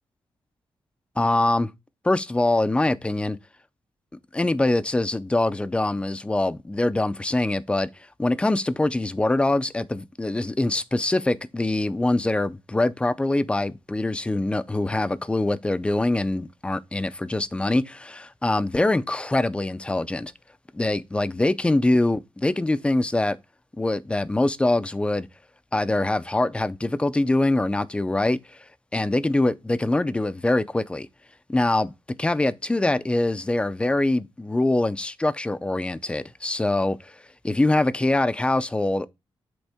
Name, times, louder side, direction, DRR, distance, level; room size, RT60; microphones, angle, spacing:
voice 1, 1.2-1.7 2.0-3.4 4.3-7.9 8.2-20.3 20.7-23.4 23.8-25.3 25.7-28.6 28.9-31.1 31.5-31.9 32.2-37.1 37.4-39.1, left 2 dB, 10° left, 0.4 m, -24 dB
8.0 x 3.5 x 3.4 m
wide cardioid pair, 125°, 9 cm